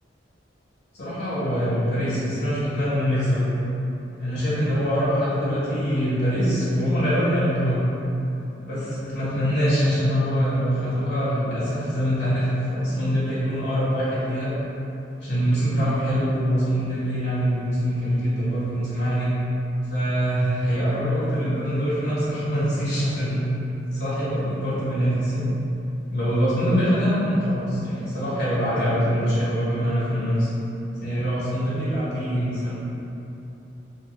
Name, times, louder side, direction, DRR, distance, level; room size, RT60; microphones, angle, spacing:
voice 1, 0.9-3.5 4.2-7.8 8.6-14.5 15.2-19.3 19.9-23.5 23.9-25.6 26.1-30.5 31.0-32.7, equal, 65° left, -11 dB, 1.2 m, -24 dB
2.6 x 2.1 x 3.6 m, 2.9 s
head